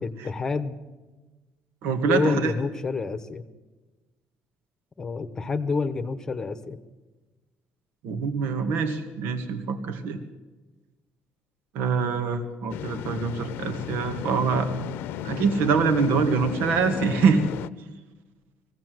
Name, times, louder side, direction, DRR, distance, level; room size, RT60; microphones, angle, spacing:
voice 1, 0.0-0.8 2.1-3.4 5.0-6.8, left 4 dB, 20° left, 11 dB, 1.0 m, -28 dB
voice 2, 1.8-2.5 8.0-10.2 11.7-14.7 15.2-17.4, right 5 dB, 85° right, 7 dB, 2.2 m, -24 dB
sound 1, 12.7-17.7, left 10 dB, 75° left, 0.7 m, -34 dB
22.0 x 16.5 x 7.8 m, 1.2 s
cardioid pair, 180°, 4 cm